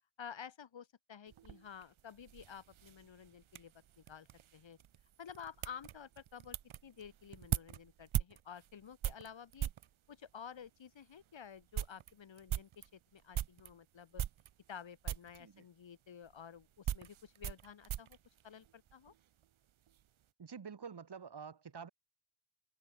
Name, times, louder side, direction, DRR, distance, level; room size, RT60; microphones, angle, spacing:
voice 1, 0.2-4.3 4.5-4.8 5.2-6.6 6.8-9.7 10.1-12.8 13.1-14.2 14.7-18.2 18.4-19.1, left 7 dB, 70° left, 3.0 m, -52 dB
sound 1, 1.3-9.9 10.7-10.8 11.2-11.3 11.5-13.7 14.1-14.8 15.0-15.4 16.2-19.2 19.4-20.0, right 11 dB, 90° right, 1.1 m, -41 dB
voice 2, 20.4-21.9, right 6 dB, 55° right, 6.2 m, -48 dB
open air
wide cardioid pair, 145°, 47 cm